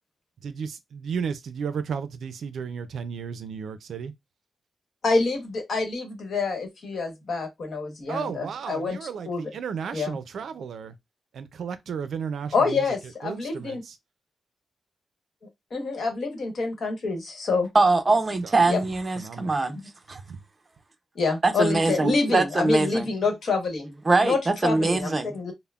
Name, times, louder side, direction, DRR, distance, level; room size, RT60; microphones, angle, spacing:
voice 1, 0.4-4.1 8.1-10.9 11.3-12.8 13.2-14.0 18.4-18.6 19.2-19.5 20.3-20.4, right 6 dB, 75° right, 0.4 m, -34 dB
voice 2, 5.0-9.4 9.9-10.2 12.5-13.8 15.7-17.7 18.7-18.8 21.1-23.9 24.2-25.5, left 3 dB, 55° left, 1.0 m, -27 dB
voice 3, 17.7-19.8 20.1-20.2 21.4-23.1 24.1-25.3, right 3 dB, 25° right, 0.6 m, -22 dB
5.4 x 2.0 x 2.3 m
wide cardioid pair, 145°, 0 cm